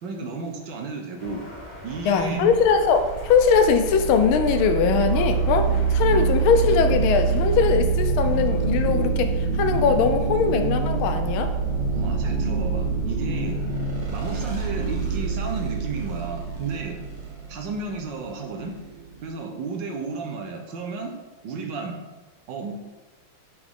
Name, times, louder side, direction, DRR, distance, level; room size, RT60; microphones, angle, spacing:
voice 1, 0.0-1.4 1.8-2.6 11.9-13.6 14.1-17.0 17.5-18.8 19.2-21.2 21.4-22.0 22.5-22.7, right 4 dB, 65° right, 3 dB, 1.4 m, -32 dB
sound 1, 1.2-7.7, left 1 dB, 25° left, 1.0 m, -42 dB
sound 2, 1.9-19.3, right 5 dB, 30° right, 0.8 m, -25 dB
voice 2, 2.1-11.5, left 6 dB, 80° left, 8 dB, 1.4 m, -21 dB
6.0 x 5.8 x 3.6 m, 1.2 s
omnidirectional pair, 2.4 m